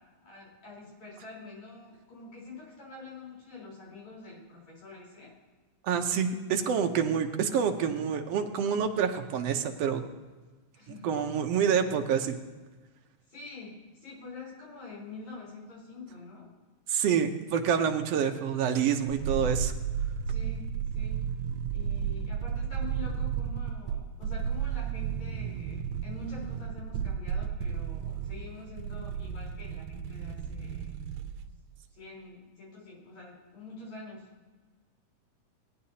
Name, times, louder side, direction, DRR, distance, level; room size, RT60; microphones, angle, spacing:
voice 1, 0.0-5.3 10.7-11.2 13.3-16.5 20.3-21.2 21.7-30.9 32.0-34.3, left 3 dB, 70° left, -4 dB, 5.5 m, -46 dB
voice 2, 5.8-10.0 10.9-12.4 16.9-19.7, right 7 dB, 70° right, 5 dB, 1.7 m, -27 dB
sound 1, 19.1-31.5 31.7-31.8, right 8 dB, 90° right, 2.0 m, -33 dB
18.5 x 9.8 x 2.8 m, 1.3 s
omnidirectional pair, 3.4 m